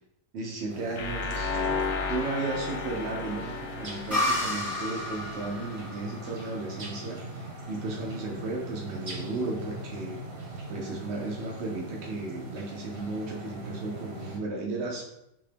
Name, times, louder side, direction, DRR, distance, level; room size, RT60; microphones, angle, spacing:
voice 1, 0.3-1.6 2.1-10.3 10.7-15.0, right 3 dB, 85° right, -1 dB, 0.6 m, -34 dB
sound 1, 0.7-14.4, right 2 dB, 50° right, 0.8 m, -41 dB
sound 2, 1.0-5.8, left 4 dB, 85° left, 0.6 m, -34 dB
sound 3, 4.1-7.6, left 1 dB, ahead, 0.5 m, -32 dB
3.6 x 2.8 x 3.3 m, 0.85 s
omnidirectional pair, 1.9 m